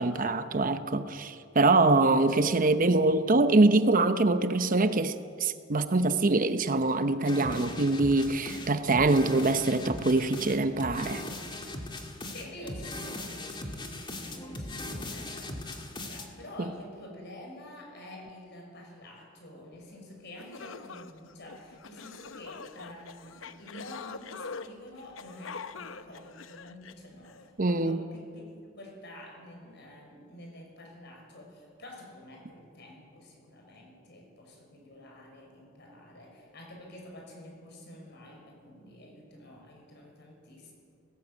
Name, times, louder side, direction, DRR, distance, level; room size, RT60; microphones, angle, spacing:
voice 1, 0.0-11.2 27.6-28.0, right 2 dB, 45° right, 0.8 m, -24 dB
voice 2, 2.2-3.1 12.3-40.7, left 1 dB, 60° left, 5.8 m, -48 dB
sound 1, 7.2-16.3, left 1 dB, 25° left, 2.0 m, -39 dB
sound 2, 20.0-20.1 20.4-27.5, left 5 dB, 75° left, 0.8 m, -44 dB
19.0 x 17.0 x 8.3 m
head